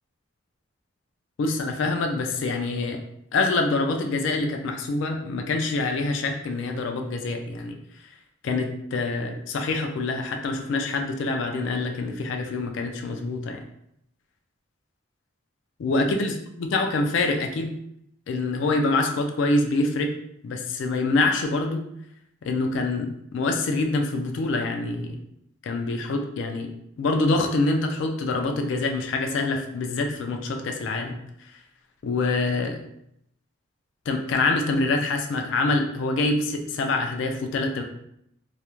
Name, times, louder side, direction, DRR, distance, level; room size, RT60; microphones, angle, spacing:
voice 1, 1.4-3.0 3.3-7.8 8.4-13.6 15.8-17.7 18.3-20.1 20.4-21.8 22.4-25.2 25.6-26.7 27.0-31.5 32.0-32.8 34.1-37.8, left 3 dB, 70° left, 4 dB, 0.3 m, -25 dB
2.4 x 2.0 x 2.9 m, 0.76 s
head